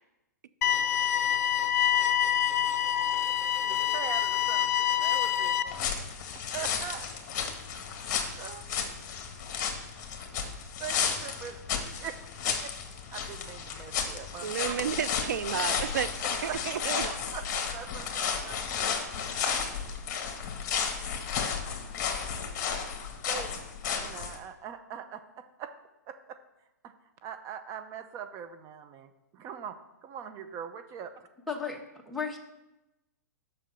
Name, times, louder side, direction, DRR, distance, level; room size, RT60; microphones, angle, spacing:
sound 1, 0.6-5.6, left 10 dB, 60° left, 0.5 m, -26 dB
voice 1, 3.7-6.0 6.5-7.1 8.4-8.7 10.8-11.6 12.0-12.2 12.4-12.7 13.1-14.7 16.4-16.6 17.0-19.0 23.2-23.7 24.0-25.7 26.1-26.4 26.8-26.9 27.2-29.8 30.0-31.1, right 8 dB, 30° right, 8 dB, 0.7 m, -42 dB
sound 2, 5.7-24.4, left 7 dB, 40° left, 1.7 m, -33 dB
voice 2, 14.4-16.1 16.4-17.1, right 8 dB, 75° right, 15 dB, 0.4 m, -31 dB
voice 3, 31.5-31.8 32.0-32.4, left 5 dB, ahead, 0 dB, 1.3 m, -33 dB
7.5 x 6.2 x 6.8 m, 0.98 s
hypercardioid pair, 130°, 10 cm